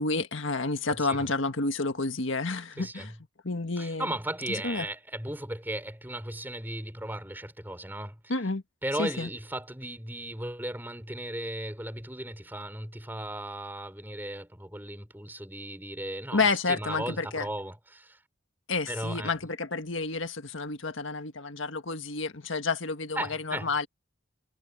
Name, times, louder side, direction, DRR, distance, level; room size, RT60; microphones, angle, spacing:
voice 1, 0.0-3.1 3.4-4.1 4.5-4.9 8.3-8.6 9.0-9.3 16.3-17.5 18.7-23.9, left 3 dB, 70° left, 1.6 m, -30 dB
voice 2, 0.9-1.3 2.8-3.1 3.8-8.2 8.8-18.2 18.9-19.3 23.2-23.7, right 1 dB, 10° right, 4.1 m, -36 dB
head